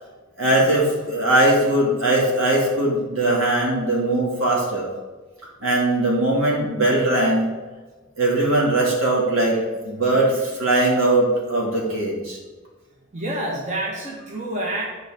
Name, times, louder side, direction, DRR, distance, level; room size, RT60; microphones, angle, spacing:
voice 1, 0.4-4.9 5.6-7.5 8.2-9.6 9.8-12.4, right 1 dB, 75° right, -3 dB, 3.0 m, -20 dB
voice 2, 13.1-14.9, right 1 dB, 35° right, -3 dB, 1.6 m, -28 dB
10.5 x 5.2 x 5.2 m, 1.3 s
head